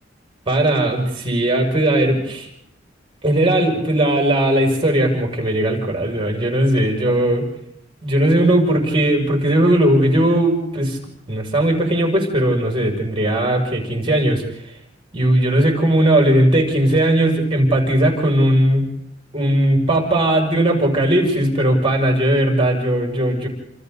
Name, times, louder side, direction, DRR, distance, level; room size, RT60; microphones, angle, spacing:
voice 1, 0.5-2.5 3.2-7.5 8.0-11.0 11.3-14.4 15.1-18.9 19.3-23.5, right 1 dB, 25° right, 0 dB, 6.9 m, -18 dB
29.5 x 28.5 x 4.1 m, 0.77 s
head